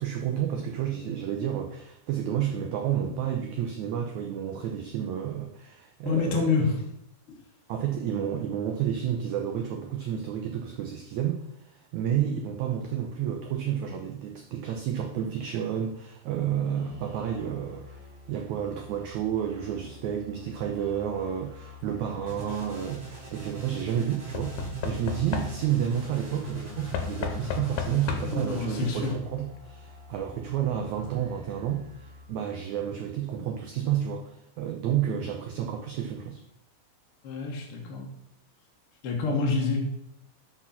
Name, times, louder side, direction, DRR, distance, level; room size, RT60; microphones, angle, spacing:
voice 1, 0.0-6.6 7.7-18.0 18.3-36.4, right 9 dB, 85° right, 3 dB, 1.6 m, -30 dB
voice 2, 6.0-6.7 7.3-7.4 28.2-29.1 37.2-38.1 39.0-39.8, left 4 dB, 60° left, 0 dB, 1.5 m, -27 dB
sound 1, 16.7-32.3, left 5 dB, 55° right, 1.0 m, -48 dB
Knock / Wood, 22.1-22.6 24.3-25.9 26.9-28.5 29.6-29.7 29.9-30.0, left 5 dB, 75° left, 2.4 m, -34 dB
sound 2, 22.3-29.1, right 3 dB, 35° right, 4.1 m, -41 dB
6.2 x 6.0 x 5.7 m, 0.85 s
omnidirectional pair, 4.2 m